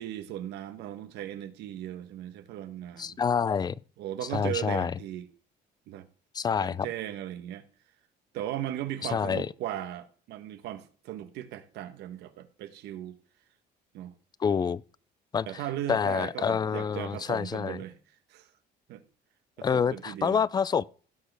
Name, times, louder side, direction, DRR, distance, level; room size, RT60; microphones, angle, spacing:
voice 1, 0.0-3.2 4.0-5.3 5.9-6.1 6.6-7.6 8.3-13.2 13.9-14.1 15.5-18.0 18.3-18.5 18.9-19.0 19.6-20.4, right 12 dB, 85° right, 1.1 m, -37 dB
voice 2, 3.0-3.8 4.3-4.9 6.3-6.9 9.0-9.5 14.4-14.8 15.3-15.6 15.9-17.8 19.6-20.8, left 6 dB, 25° left, 0.3 m, -27 dB
16.0 x 6.5 x 3.4 m
cardioid pair, 110°, 17 cm